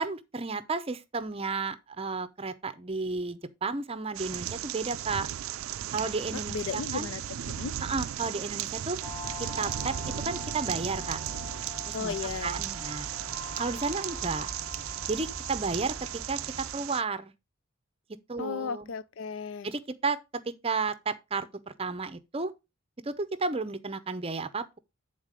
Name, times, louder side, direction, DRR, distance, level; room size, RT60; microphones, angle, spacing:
voice 1, 0.0-5.3 5.9-7.1 7.8-9.0 9.6-10.0 10.3-11.2 11.9-12.1 12.4-13.1 13.6-14.5 15.1-16.0 16.3-17.3 18.3-18.9 19.6-22.5 23.0-24.8, right 4 dB, 25° right, 0.6 m, -32 dB
sound 1, 4.1-17.0, right 11 dB, 80° right, 0.4 m, -36 dB
voice 2, 6.3-7.2 7.5-7.8 11.9-12.6 18.4-19.7, left 5 dB, 65° left, 0.4 m, -35 dB
sound 2, 9.0-16.8, left 2 dB, 10° left, 1.3 m, -43 dB
9.0 x 4.1 x 5.0 m
head